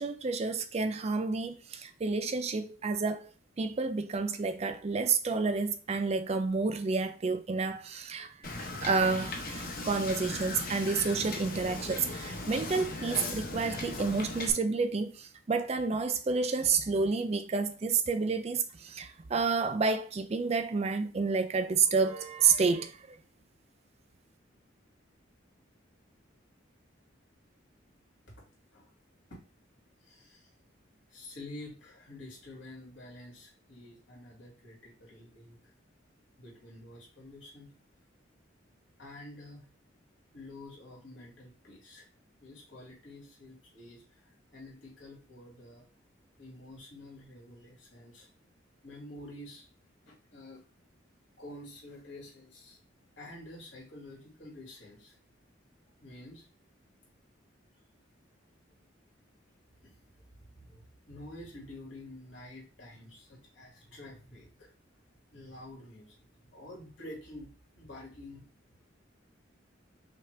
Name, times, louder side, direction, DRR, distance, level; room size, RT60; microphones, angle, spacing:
voice 1, 0.0-3.3 3.6-8.3 8.8-22.9, right 4 dB, 35° right, 0.4 m, -29 dB
Wind / Boat Water vehicle, 8.4-14.5, left 2 dB, 50° left, 0.9 m, -38 dB
voice 2, 30.0-30.5 31.1-35.7 36.4-37.7 39.0-39.7 40.3-42.1 42.4-45.9 46.4-48.3 48.8-49.7 50.1-50.6 51.4-52.8 53.2-55.2 56.0-56.5 59.7-59.9 60.4-64.7 65.3-66.2 66.4-68.5, left 1 dB, 75° left, 2.1 m, -49 dB
5.7 x 2.4 x 3.3 m
head